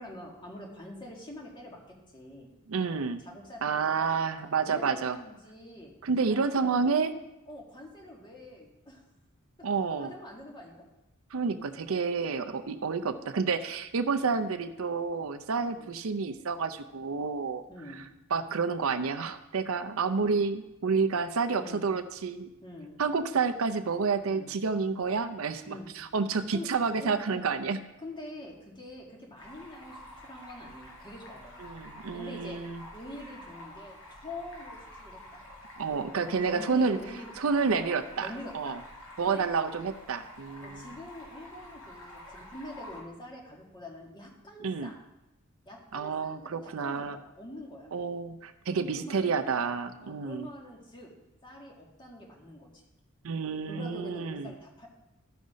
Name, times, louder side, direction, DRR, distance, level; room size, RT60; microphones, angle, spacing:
voice 1, 0.0-2.5 3.2-5.9 6.3-6.8 7.5-9.0 10.0-10.8 12.3-12.6 15.7-15.9 17.7-18.0 21.5-21.8 22.6-22.9 24.2-24.5 25.7-25.9 26.5-26.7 27.0-27.5 28.0-31.6 32.1-32.6 32.9-35.4 36.4-37.3 37.7-37.9 38.2-38.8 39.2-39.5 40.6-45.0 45.7-47.9 48.7-49.4 50.0-51.1 51.4-52.8 53.7-54.9, left 1 dB, 20° left, -1 dB, 2.0 m, -45 dB
voice 2, 2.7-3.2 3.6-5.2 6.0-7.1 9.6-10.1 11.3-17.6 17.9-18.0 18.3-22.5 23.0-27.8 31.6-32.8 35.8-37.0 37.4-38.8 39.2-40.8 44.6-44.9 45.9-47.2 47.9-50.5 53.2-54.5, right 5 dB, 70° right, 10 dB, 0.6 m, -29 dB
Stream, 29.4-43.0, left 1 dB, 70° left, 4.1 m, -49 dB
13.0 x 5.6 x 5.1 m, 0.94 s
head